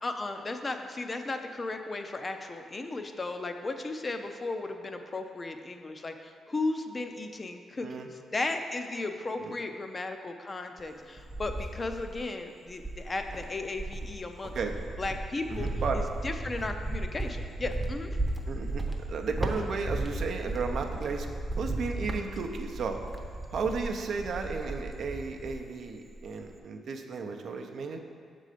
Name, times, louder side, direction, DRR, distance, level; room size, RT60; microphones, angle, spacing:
voice 1, 0.0-8.1 8.3-14.5 15.0-15.7 15.9-18.2, left 2 dB, 30° left, 6 dB, 0.4 m, -35 dB
voice 2, 7.8-8.1 9.4-9.5 14.5-14.8 15.5-16.0 18.5-18.8 19.1-21.3 21.6-23.0 23.5-28.0, right 4 dB, 65° right, 4 dB, 0.5 m, -34 dB
Cricket, 10.8-12.3 12.8-25.7 26.0-26.6, right 2 dB, 5° right, 0.7 m, -35 dB
6.5 x 3.8 x 5.0 m, 2.1 s
cardioid pair, 105°, 0 cm